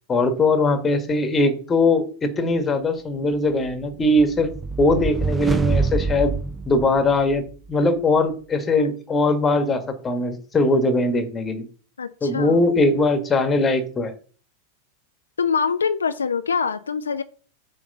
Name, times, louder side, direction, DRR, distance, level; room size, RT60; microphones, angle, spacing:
voice 1, 0.1-4.5 4.8-6.3 6.7-11.7 12.2-14.1, left 2 dB, 20° left, 8 dB, 1.3 m, -20 dB
sound 1, 3.9-7.5, right 4 dB, 15° right, 0.5 m, -26 dB
voice 2, 12.0-12.6 15.4-17.2, left 6 dB, 75° left, 9 dB, 0.4 m, -24 dB
7.8 x 3.2 x 5.4 m, 0.41 s
figure-of-eight pair, 90°, 0 cm